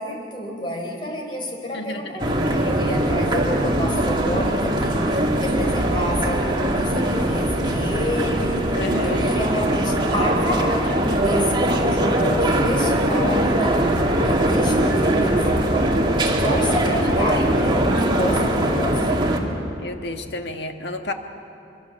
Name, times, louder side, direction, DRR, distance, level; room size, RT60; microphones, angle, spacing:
voice 1, 0.0-8.6 9.0-13.8 14.2-15.4 16.2-19.1, equal, 30° left, 1 dB, 4.0 m, -29 dB
voice 2, 1.7-2.3 8.7-9.4 16.8-17.4 19.8-21.1, left 2 dB, 70° left, 5 dB, 1.6 m, -31 dB
sound 1, 2.2-19.4, right 1 dB, 25° right, 2.2 m, -21 dB
24.0 x 23.5 x 7.0 m, 2.7 s
head